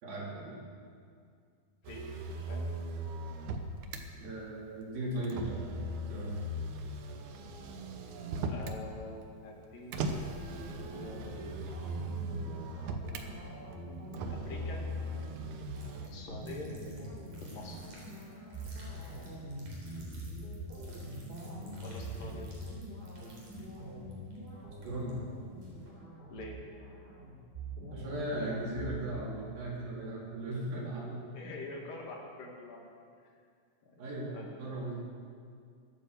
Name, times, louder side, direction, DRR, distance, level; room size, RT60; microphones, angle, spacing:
voice 1, 0.0-0.6 4.2-5.8 6.1-6.4 24.8-25.2 27.9-31.2 34.0-34.9, right 1 dB, 85° right, -5 dB, 5.3 m, -37 dB
Motor vehicle (road), 1.8-4.0 5.2-8.8 9.9-13.3 14.1-16.1, right 1 dB, 70° right, 2.2 m, -38 dB
voice 2, 8.5-10.2 10.9-11.4 12.1-12.7 14.3-14.8 16.1-16.7 17.4-17.8 21.8-22.5 26.3-26.6 31.3-32.9 33.8-34.0 34.3-34.5, left 2 dB, 75° left, 0 dB, 3.8 m, -45 dB
sound 1, 10.1-29.1, right 1 dB, 15° right, 3.6 m, -44 dB
sound 2, 15.7-25.1 25.6-25.9, right 1 dB, 55° right, 4.9 m, -56 dB
23.0 x 8.9 x 6.7 m, 2.2 s
omnidirectional pair, 4.0 m